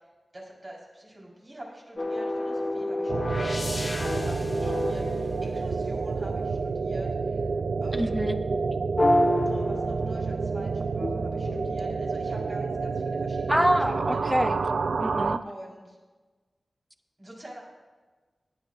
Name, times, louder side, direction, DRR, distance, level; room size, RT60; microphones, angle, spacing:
voice 1, 0.3-8.4 9.4-14.2 15.4-16.0 17.2-17.6, right 1 dB, 40° right, -4 dB, 4.0 m, -45 dB
sound 1, 2.0-6.1 9.0-10.5 11.0-12.8, left 1 dB, 35° left, 0.7 m, -29 dB
sound 2, 3.1-15.4, right 4 dB, 70° right, 0.3 m, -29 dB
voice 2, 8.0-8.4 13.5-14.6 15.0-15.4, equal, 5° right, 7 dB, 0.8 m, -25 dB
18.5 x 9.9 x 2.5 m, 1.3 s
wide cardioid pair, 65°, 0 cm